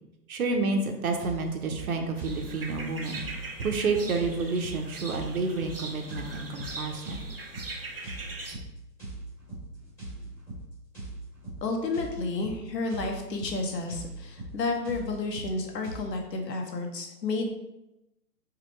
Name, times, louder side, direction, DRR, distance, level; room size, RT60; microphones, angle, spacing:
voice 1, 0.3-7.2, right 3 dB, 60° right, 3 dB, 0.9 m, -30 dB
sound 1, 1.2-16.0, right 2 dB, 5° left, 1.3 m, -41 dB
sound 2, 2.2-8.5, right 2 dB, 40° right, 0.4 m, -41 dB
voice 2, 11.6-17.5, left 3 dB, 75° left, 2 dB, 1.2 m, -31 dB
4.9 x 2.3 x 4.7 m, 0.93 s
hypercardioid pair, 165°, 49 cm